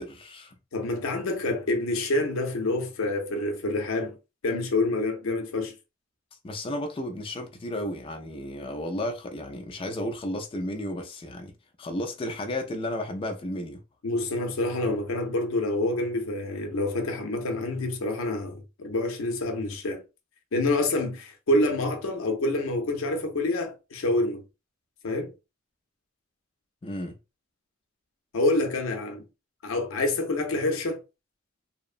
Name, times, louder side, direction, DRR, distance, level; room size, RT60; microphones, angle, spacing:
voice 1, 0.0-0.6 6.4-11.5 11.8-13.8 26.8-27.2, left 1 dB, 25° left, 0.4 m, -33 dB
voice 2, 0.7-4.2 4.4-5.7 14.0-20.0 20.5-24.4 25.0-25.3 28.3-29.3 29.6-31.0, left 2 dB, 85° left, 0.6 m, -27 dB
2.8 x 2.0 x 2.4 m
head